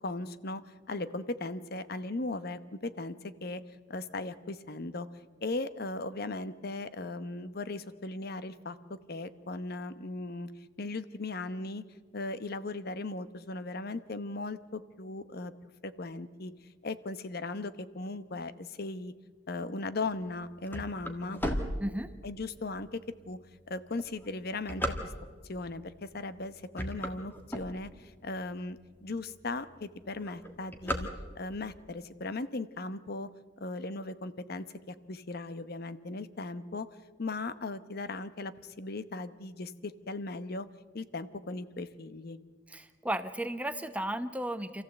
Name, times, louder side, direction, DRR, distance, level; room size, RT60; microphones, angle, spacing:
voice 1, 0.0-3.2 3.4-3.6 3.9-5.1 5.4-10.5 10.8-11.8 12.1-15.5 15.8-16.5 16.8-19.1 19.5-21.4 22.2-23.4 23.7-24.9 25.5-31.1 31.4-33.3 33.6-36.9 37.2-40.7 40.9-42.4, left 2 dB, 50° left, 13 dB, 0.9 m, -38 dB
sound 1, 20.2-22.5 23.1-23.2 23.8-25.5 26.2-26.4 26.7-28.2 28.7-28.8 29.0-29.1 29.4-29.8 30.0-31.7, equal, 10° left, 1.7 m, -35 dB
voice 2, 21.8-22.1 42.7-44.8, right 1 dB, 5° right, 9 dB, 0.9 m, -34 dB
27.5 x 14.5 x 7.9 m, 1.5 s
head